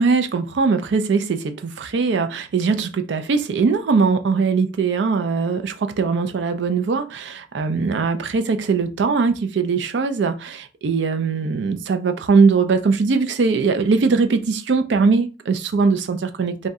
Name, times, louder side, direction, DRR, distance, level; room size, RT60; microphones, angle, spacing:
voice 1, 0.0-16.7, right 4 dB, 75° right, 0.4 m, -20 dB
2.6 x 2.1 x 3.5 m
head